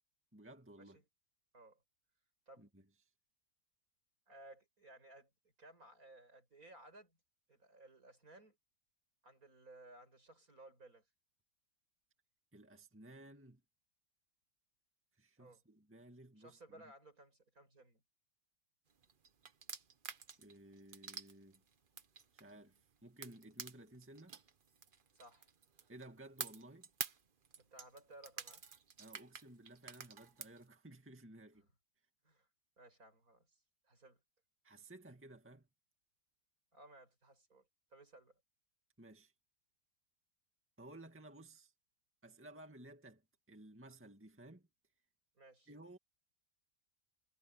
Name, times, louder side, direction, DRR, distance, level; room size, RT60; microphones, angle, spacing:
voice 1, 0.3-1.0 2.6-2.9 12.5-13.6 15.2-16.8 20.4-21.6 22.3-24.4 25.9-26.9 29.0-31.7 34.6-35.7 39.0-39.3 40.8-41.7 42.2-43.2 43.5-44.7 45.7-46.0, right 1 dB, 5° right, 2.0 m, -56 dB
voice 2, 4.3-5.3 5.6-7.2 7.5-8.6 9.2-11.0 15.4-15.6 16.4-18.0 25.1-25.5 27.6-28.6 32.2-32.5 32.8-34.2 36.7-38.4 45.4-45.7, right 1 dB, 55° right, 6.9 m, -59 dB
sound 1, 19.0-22.8 23.2-26.1 26.4-30.6, right 6 dB, 40° right, 0.9 m, -48 dB
omnidirectional pair, 1.8 m